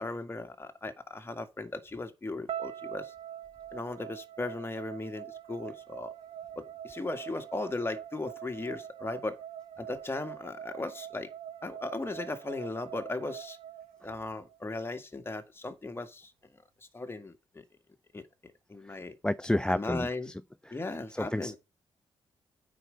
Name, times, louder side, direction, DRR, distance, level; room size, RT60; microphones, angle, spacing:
voice 1, 0.0-3.1 3.7-6.1 6.6-9.4 9.8-11.3 11.6-13.6 14.0-16.3 16.9-17.6 18.1-18.2 18.7-19.1 19.7-20.3 20.7-21.6, left 2 dB, 25° left, 2.0 m, -37 dB
sound 1, 2.5-14.6, right 10 dB, 75° right, 1.2 m, -44 dB
voice 2, 19.2-20.1 21.2-21.6, left 1 dB, 10° left, 0.5 m, -29 dB
8.7 x 5.1 x 6.6 m
supercardioid pair, 55°, 10 cm